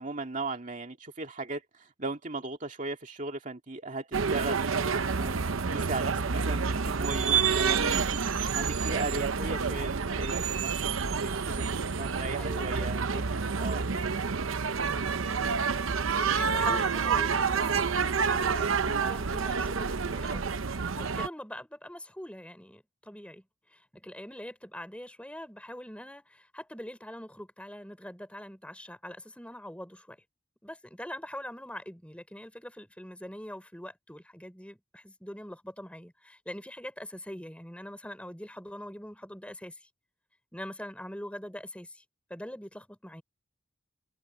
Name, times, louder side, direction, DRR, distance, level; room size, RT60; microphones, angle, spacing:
voice 1, 0.0-4.7 5.0-10.7 11.0-11.6 12.0-13.0 13.3-14.1, right 3 dB, 40° right, 2.3 m, -37 dB
sound 1, 4.1-21.3, right 5 dB, 85° right, 0.8 m, -28 dB
voice 2, 12.4-13.3 16.3-23.4 23.7-30.2 30.6-39.9 40.5-42.0 42.3-43.2, left 1 dB, 5° left, 4.7 m, -43 dB
head